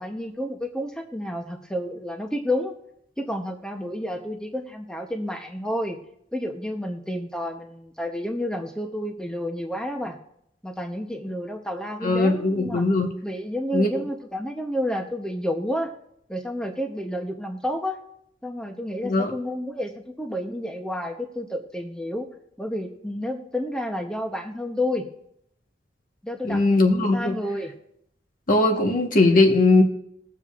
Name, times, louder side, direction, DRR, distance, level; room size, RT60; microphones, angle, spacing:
voice 1, 0.0-2.7 3.2-6.0 6.3-10.2 10.6-12.8 13.2-15.9 16.3-18.0 18.4-22.3 22.6-25.1 26.2-27.7, left 1 dB, 5° left, 3 dB, 0.8 m, -30 dB
voice 2, 12.0-13.1 13.7-13.9 19.0-19.3 26.4-27.3 28.5-29.8, left 2 dB, 50° left, 2 dB, 1.3 m, -19 dB
21.0 x 7.5 x 2.5 m, 0.74 s
head